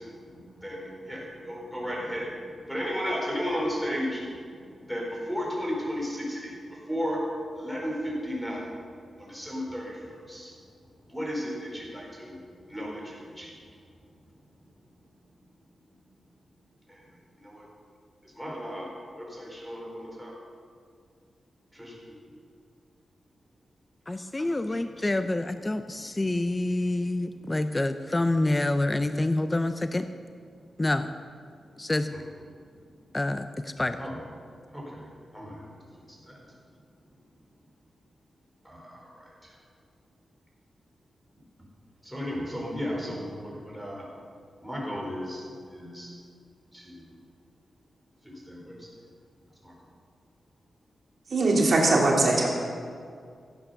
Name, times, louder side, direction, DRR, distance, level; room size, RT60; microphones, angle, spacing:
voice 1, 0.6-2.3 2.7-4.2 4.9-5.0 5.3-6.4 6.9-7.2 7.6-8.6 9.3-9.8 10.3-10.4 11.1-12.3 12.7-12.9 13.4-13.5 18.4-18.8 19.2-20.3 34.0-34.1 35.3-35.5 42.1-44.0 44.6-45.4 45.7-46.1, equal, ahead, -3 dB, 4.3 m, -33 dB
voice 2, 24.1-30.1 30.8-31.1 31.8-32.1 33.1-34.0, left 2 dB, 20° left, 9 dB, 0.5 m, -27 dB
voice 3, 51.3-52.5, right 2 dB, 50° right, -2 dB, 2.8 m, -21 dB
16.0 x 8.6 x 6.8 m, 2.2 s
wide cardioid pair, 125°, 0 cm